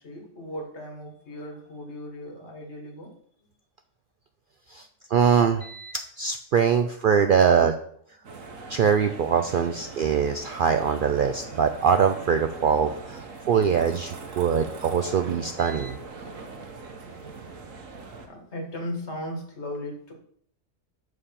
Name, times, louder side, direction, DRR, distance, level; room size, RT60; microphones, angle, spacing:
voice 1, 0.0-3.2 17.8-17.9 18.2-20.1, left 1 dB, 60° left, 3 dB, 1.8 m, -37 dB
voice 2, 4.7-7.7 8.7-16.0, right 7 dB, 65° right, 7 dB, 0.5 m, -23 dB
sound 1, 8.2-18.3, right 4 dB, 85° right, 1.4 m, -41 dB
6.8 x 4.8 x 5.6 m, 0.64 s
omnidirectional pair, 1.3 m